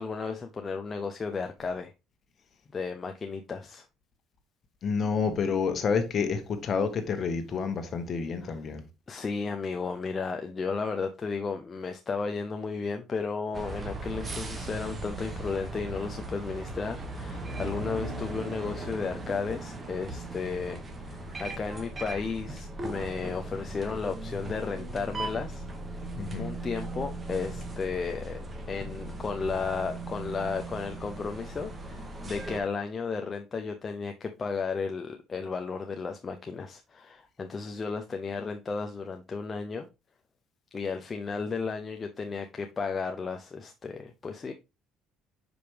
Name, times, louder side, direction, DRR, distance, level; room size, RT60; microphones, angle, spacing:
voice 1, 0.0-1.9 2.7-3.9 8.4-8.6 9.1-25.6 26.4-28.4 28.7-39.9 40.7-44.5, left 4 dB, 30° left, 0.6 m, -34 dB
voice 2, 4.8-8.8 26.1-26.5, left 5 dB, 45° left, 1.3 m, -29 dB
sound 1, 13.5-32.6, right 2 dB, 25° right, 1.2 m, -38 dB
5.7 x 5.2 x 3.3 m
cardioid pair, 110°, 0 cm